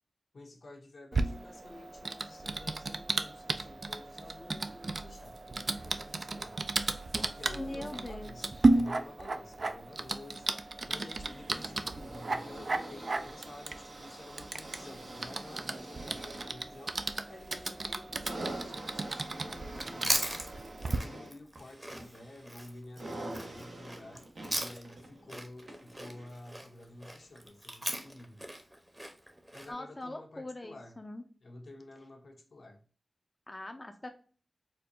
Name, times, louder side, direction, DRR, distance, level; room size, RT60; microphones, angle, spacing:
voice 1, 0.3-6.6 7.4-17.0 17.3-20.3 20.8-24.3 24.6-28.4 29.5-31.0 31.4-32.8, left 2 dB, 80° left, 0.8 m, -51 dB
Typing, 1.1-21.0, right 3 dB, 60° right, 0.3 m, -34 dB
voice 2, 7.5-8.6 29.7-31.2 33.5-34.1, left 2 dB, 30° left, 0.4 m, -42 dB
sound 1, 11.2-26.6 27.5-27.6, right 1 dB, 75° right, 0.8 m, -46 dB
Chewing mastication, 19.7-25.0 25.3-29.7, right 1 dB, 20° right, 0.8 m, -38 dB
4.2 x 2.2 x 2.5 m
cardioid pair, 55°, 0 cm